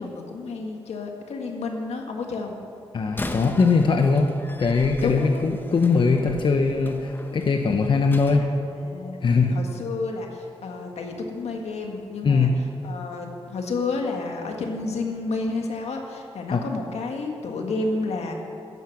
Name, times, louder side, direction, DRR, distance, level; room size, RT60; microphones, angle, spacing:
voice 1, 0.0-2.5 5.0-5.5 8.3-8.5 8.8-12.5 12.8-18.3, left 3 dB, 85° left, 2 dB, 1.7 m, -30 dB
voice 2, 2.9-4.3 4.6-8.5 9.2-9.6 12.2-12.6 16.5-16.6, left 4 dB, 50° left, 4 dB, 0.8 m, -21 dB
Slam, 3.0-8.4, left 2 dB, 20° left, 0.9 m, -39 dB
13.5 x 10.5 x 5.9 m, 2.7 s
cardioid pair, 90°, 11 cm